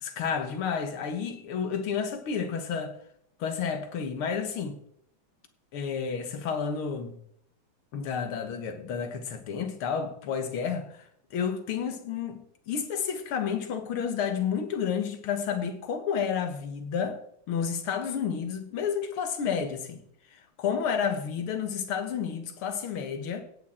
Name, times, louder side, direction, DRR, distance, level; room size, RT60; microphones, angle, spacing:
voice 1, 0.0-2.9 3.4-4.8 5.7-7.2 7.9-17.2 17.5-20.0 20.3-23.4, left 7 dB, 85° left, 2.2 m, -31 dB
16.5 x 8.7 x 4.3 m
omnidirectional pair, 2.3 m